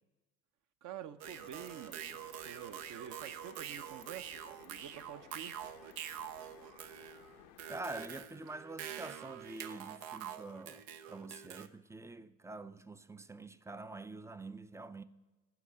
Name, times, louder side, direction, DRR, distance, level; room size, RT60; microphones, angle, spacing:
voice 1, 0.8-5.6, right 9 dB, 50° right, 0.7 m, -48 dB
sound 1, 1.2-8.3, left 10 dB, 85° left, 0.8 m, -58 dB
sound 2, 1.2-11.7, right 10 dB, 80° right, 0.7 m, -46 dB
voice 2, 7.7-15.0, right 2 dB, 10° right, 0.3 m, -46 dB
12.0 x 4.8 x 8.5 m
hypercardioid pair, 75°, 40 cm